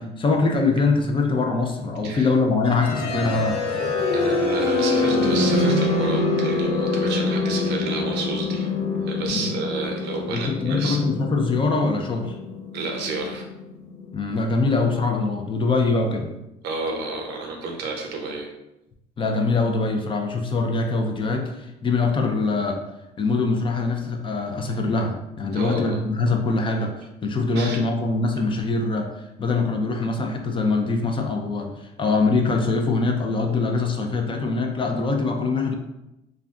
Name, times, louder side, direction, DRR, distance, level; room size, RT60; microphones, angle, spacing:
voice 1, 0.0-3.6 9.3-9.6 10.3-12.4 14.1-16.3 19.2-22.8 23.2-35.7, left 3 dB, 30° left, 3 dB, 0.4 m, -23 dB
sound 1, 2.6-14.5, left 3 dB, 85° left, 0.6 m, -25 dB
voice 2, 4.1-8.7 9.1-11.0 12.7-13.4 16.6-18.5 25.5-26.0 27.6-27.8, right 3 dB, 85° right, 1 dB, 0.7 m, -31 dB
2.4 x 2.2 x 3.5 m, 0.90 s
cardioid pair, 110°, 17 cm